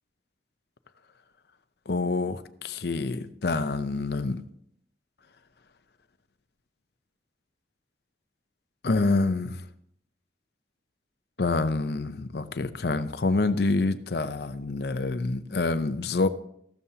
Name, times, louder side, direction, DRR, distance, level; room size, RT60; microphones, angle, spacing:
voice 1, 1.9-2.4 2.6-4.4 8.8-9.6 11.4-16.3, left 3 dB, 60° left, 11 dB, 0.6 m, -27 dB
14.5 x 12.5 x 2.8 m, 0.70 s
head